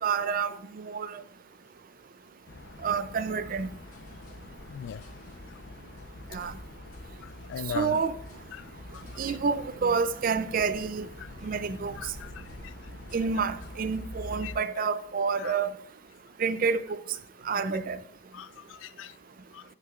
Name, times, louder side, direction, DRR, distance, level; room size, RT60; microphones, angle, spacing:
voice 1, 0.0-1.2 2.8-3.7 6.3-6.5 7.7-8.2 9.2-11.1 11.4-11.9 13.1-15.7 16.4-17.0 17.5-18.0, right 5 dB, 45° right, 0.4 m, -28 dB
sound 1, 2.5-14.6, left 1 dB, 55° left, 0.7 m, -45 dB
sound 2, 3.4-14.0, left 1 dB, 40° left, 2.1 m, -58 dB
voice 2, 4.7-5.0 7.5-8.0 8.9-9.0 12.2-12.3 12.6-12.7 14.4-14.5 15.4-15.5 18.3-19.1 19.5-19.6, left 8 dB, 70° left, 0.3 m, -38 dB
15.0 x 6.5 x 2.4 m
head